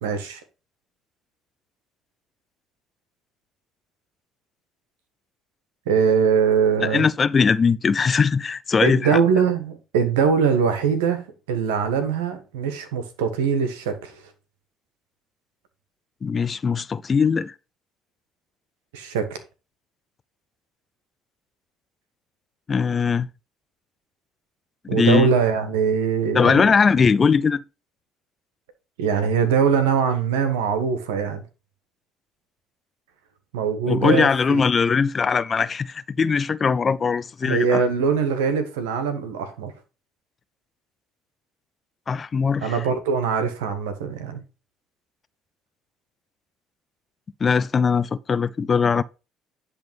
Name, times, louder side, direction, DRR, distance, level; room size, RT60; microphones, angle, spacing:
voice 1, 0.0-0.4 5.8-7.0 8.8-14.2 18.9-19.4 24.9-26.7 29.0-31.4 33.5-34.6 37.4-39.7 42.6-44.4, right 6 dB, 85° right, 1.5 m, -22 dB
voice 2, 6.9-9.2 16.2-17.5 22.7-23.3 24.9-25.3 26.3-27.6 33.9-37.8 42.1-42.8 47.4-49.0, left 5 dB, 35° left, 0.5 m, -20 dB
10.5 x 3.6 x 5.3 m
hypercardioid pair, 65°, 0 cm